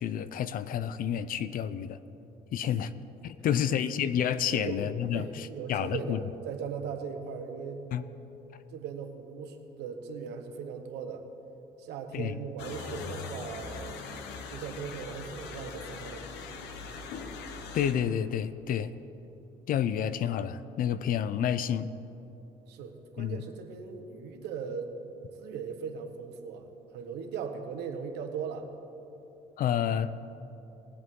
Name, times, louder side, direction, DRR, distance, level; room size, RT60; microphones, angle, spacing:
voice 1, 0.0-2.0 2.5-2.9 3.2-6.2 7.9-8.0 12.1-12.4 17.7-18.9 19.7-21.9 23.2-23.4 29.6-30.3, left 9 dB, 55° left, 14 dB, 0.5 m, -29 dB
voice 2, 3.4-3.8 4.5-4.8 5.1-7.8 8.7-11.2 11.8-13.9 14.5-16.7 22.7-24.9 25.4-28.7, right 6 dB, 85° right, 6 dB, 1.2 m, -39 dB
sound 1, 12.6-17.9, left 4 dB, 90° left, 1.0 m, -41 dB
19.5 x 8.1 x 3.8 m, 3.0 s
cardioid pair, 110°, 17 cm